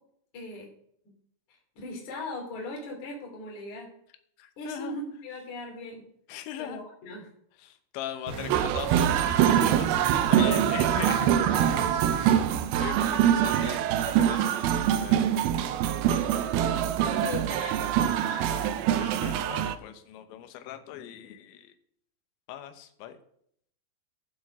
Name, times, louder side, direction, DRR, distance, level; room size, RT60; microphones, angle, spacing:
voice 1, 0.3-0.7 1.8-3.9 4.6-6.0 6.6-7.3 10.3-10.8 17.1-18.8, left 2 dB, 45° left, -1 dB, 4.1 m, -39 dB
voice 2, 4.4-5.0 6.3-6.8 7.6-12.5 12.8-15.5 19.0-21.7 22.5-23.2, left 10 dB, 85° left, 8 dB, 3.3 m, -40 dB
sound 1, 8.3-12.7, right 5 dB, 65° right, 3.1 m, -36 dB
sound 2, 8.5-19.8, right 10 dB, 90° right, 2.1 m, -24 dB
14.5 x 7.7 x 6.2 m, 0.69 s
omnidirectional pair, 5.2 m